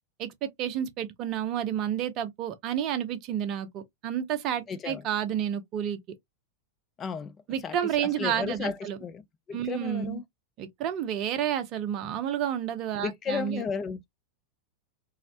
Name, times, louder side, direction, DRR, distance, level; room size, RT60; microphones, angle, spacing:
voice 1, 0.2-6.0 7.5-9.0 9.5-10.2 10.6-13.6, right 10 dB, 40° right, 0.5 m, -30 dB
voice 2, 4.7-5.0 7.0-7.3 7.6-10.2 13.0-14.0, left 6 dB, 25° left, 0.3 m, -34 dB
2.4 x 2.0 x 2.5 m
figure-of-eight pair, 90°, 0 cm